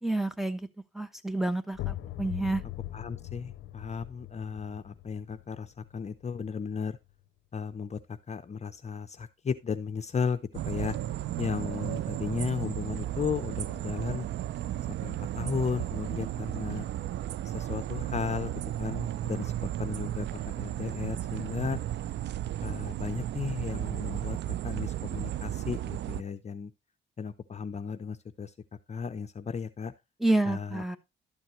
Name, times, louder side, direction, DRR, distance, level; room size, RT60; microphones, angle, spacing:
voice 1, 0.0-0.7 0.9-2.6 30.2-31.0, right 2 dB, ahead, 1.0 m, -29 dB
sound 1, 1.7-7.3, left 15 dB, 75° left, 0.6 m, -41 dB
voice 2, 2.9-7.0 7.5-10.4 10.7-10.9 11.4-14.3 15.0-16.9 17.4-18.5 18.8-21.8 22.6-24.4 24.6-26.7 27.2-28.5 28.9-29.9 30.5-30.8, left 6 dB, 35° left, 0.7 m, -35 dB
sound 2, 10.5-26.2, right 12 dB, 65° right, 0.4 m, -34 dB
12.0 x 7.3 x 3.1 m
cardioid pair, 90°, 20 cm